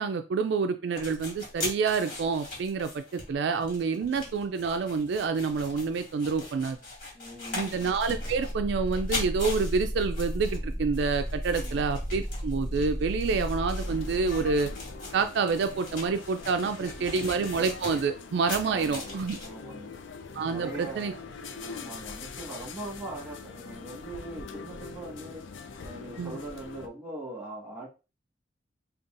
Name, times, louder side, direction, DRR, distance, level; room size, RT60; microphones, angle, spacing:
voice 1, 0.0-6.8 7.5-14.7 15.1-19.4 20.3-21.1 26.2-26.3, right 4 dB, 65° right, 8 dB, 0.3 m, -28 dB
sound 1, 0.9-19.5, left 2 dB, 45° left, 2.1 m, -41 dB
voice 2, 7.1-7.7 11.6-11.8 16.6-16.9 17.1-17.2 18.6-19.1 19.4-19.9 20.5-21.3 21.5-27.9, right 1 dB, 10° right, -3 dB, 1.5 m, -41 dB
sound 2, 7.6-15.2, equal, 15° left, 0.7 m, -34 dB
sound 3, 13.8-26.9, left 4 dB, 90° left, 0.5 m, -43 dB
5.2 x 2.4 x 2.5 m, 0.30 s
head